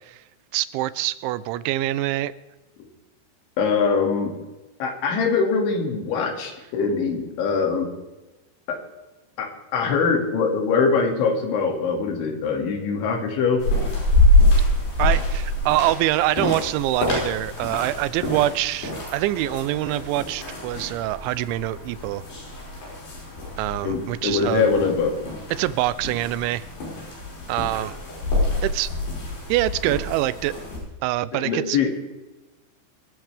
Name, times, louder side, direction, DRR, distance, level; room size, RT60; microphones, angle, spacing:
voice 1, 0.5-2.3 15.0-22.2 23.6-24.6 25.5-26.6 27.5-28.0 28.6-28.9 29.5-30.5 31.0-32.0, right 15 dB, 90° right, 16 dB, 3.0 m, -25 dB
voice 2, 3.6-4.3 4.8-7.9 8.7-8.8 9.4-13.6 23.8-25.2 31.3-31.9, left 5 dB, 85° left, 2 dB, 4.8 m, -23 dB
sound 1, 13.6-30.8, left 1 dB, 60° left, 7.6 m, -25 dB
24.0 x 14.0 x 3.5 m, 1.1 s
omnidirectional pair, 5.3 m